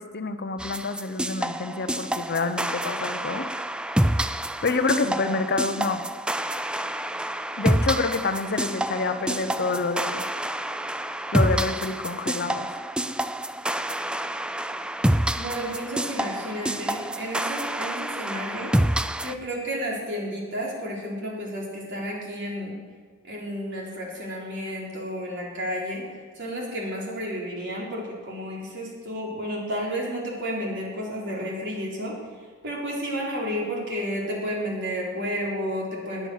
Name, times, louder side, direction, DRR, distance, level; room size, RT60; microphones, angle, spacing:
voice 1, 0.0-3.5 4.6-6.0 7.6-10.2 11.3-12.7, left 3 dB, 50° left, 9 dB, 0.8 m, -27 dB
sound 1, 0.6-19.3, right 1 dB, 5° right, 0.4 m, -28 dB
voice 2, 15.4-18.7 19.2-22.8 23.2-26.0 26.4-32.1 32.6-36.3, equal, 55° right, -3 dB, 4.2 m, -31 dB
19.0 x 9.3 x 6.6 m, 1.5 s
head